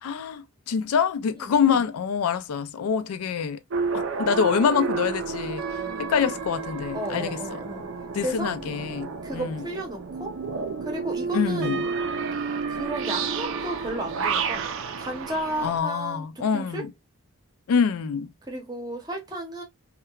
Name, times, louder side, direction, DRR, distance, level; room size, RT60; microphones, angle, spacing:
voice 1, 0.0-3.6 3.9-5.7 6.0-7.4 8.1-9.6 11.3-11.8 15.6-16.9 17.7-18.3, left 6 dB, 85° left, 0.4 m, -25 dB
voice 2, 1.4-1.9 6.9-7.9 8.2-8.5 9.2-10.4 10.8-11.8 12.7-14.7 15.0-16.8 18.4-19.6, right 1 dB, 20° right, 0.7 m, -33 dB
sound 1, 3.7-15.8, right 5 dB, 60° right, 0.4 m, -31 dB
2.8 x 2.2 x 2.2 m
head